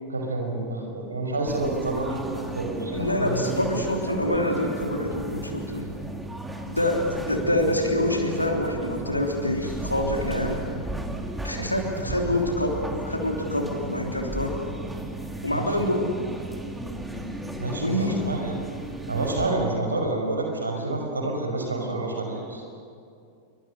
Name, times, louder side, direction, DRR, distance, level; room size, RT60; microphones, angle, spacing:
voice 1, 0.1-3.6 12.1-12.3 15.5-15.8 17.6-18.6 19.1-22.6, right 2 dB, 80° right, 2 dB, 5.6 m, -28 dB
sound 1, 1.5-19.5, right 2 dB, 5° right, 2.5 m, -35 dB
voice 2, 2.9-5.9 6.7-10.6 11.4-14.6 15.4-16.1 17.8-18.3, left 1 dB, 85° left, 1 dB, 3.3 m, -26 dB
28.0 x 24.0 x 6.7 m, 2.4 s
figure-of-eight pair, 90°, 0 cm